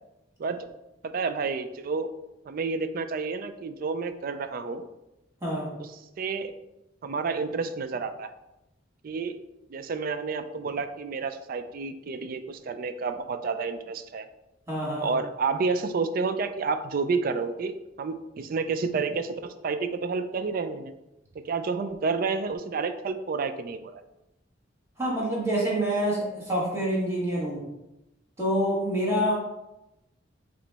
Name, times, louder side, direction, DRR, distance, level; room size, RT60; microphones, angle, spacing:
voice 1, 1.1-2.1 2.5-4.9 5.8-5.9 6.2-6.6 7.0-8.3 9.0-9.4 9.7-14.3 15.0-20.9 21.4-24.0, right 4 dB, 50° right, 10 dB, 0.3 m, -30 dB
voice 2, 14.7-15.1 25.0-27.6 28.4-29.3, equal, 15° right, -6 dB, 1.5 m, -27 dB
4.9 x 3.1 x 3.4 m, 0.93 s
head